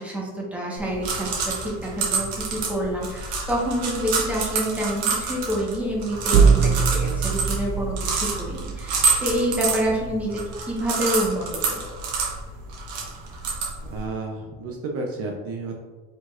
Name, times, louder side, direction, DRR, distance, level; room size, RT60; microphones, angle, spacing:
voice 1, 0.0-11.8, equal, 5° right, -4 dB, 1.2 m, -27 dB
sound 1, 0.8-14.1, right 4 dB, 70° right, 1.3 m, -28 dB
sound 2, 6.3-10.2, right 6 dB, 90° right, 0.5 m, -23 dB
voice 2, 13.9-15.7, right 3 dB, 50° right, 1 dB, 0.6 m, -31 dB
4.8 x 3.8 x 2.5 m, 1.3 s
cardioid pair, 125°, 31 cm